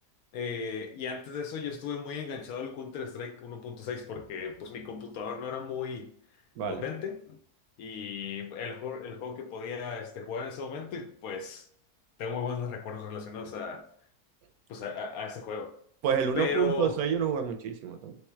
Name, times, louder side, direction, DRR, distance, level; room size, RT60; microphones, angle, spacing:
voice 1, 0.3-6.1 6.7-7.4 7.8-11.7 12.2-13.8 14.7-15.7 16.4-16.9, left 5 dB, 70° left, 1.0 m, -36 dB
voice 2, 16.0-18.2, right 7 dB, 75° right, 1.0 m, -28 dB
3.4 x 3.1 x 4.4 m
omnidirectional pair, 1.7 m